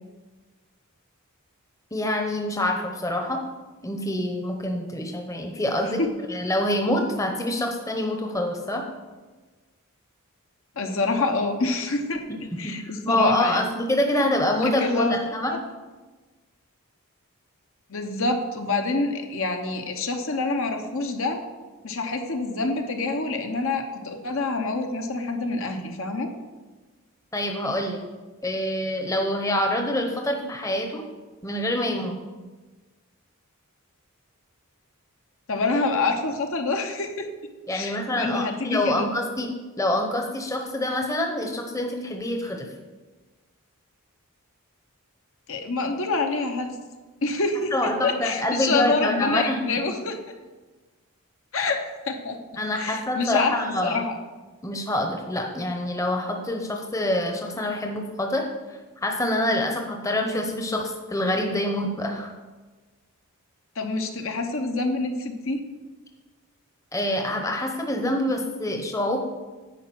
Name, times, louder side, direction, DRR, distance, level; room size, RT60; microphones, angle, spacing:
voice 1, 1.9-3.4 3.8-6.0 6.3-8.8 12.6-15.5 27.3-28.0 28.4-31.0 31.4-32.2 37.7-39.5 39.8-42.7 47.7-49.6 52.6-54.0 54.6-58.4 58.7-62.3 66.9-69.2, left 1 dB, 15° left, 2 dB, 0.8 m, -26 dB
voice 2, 10.8-12.3 12.6-13.7 14.6-15.3 17.9-21.4 21.8-26.3 35.5-37.3 37.7-39.1 45.5-46.8 47.2-50.2 51.5-52.4 52.8-54.1 63.8-65.6, left 3 dB, 65° left, 5 dB, 0.9 m, -26 dB
10.0 x 4.7 x 6.1 m, 1.3 s
head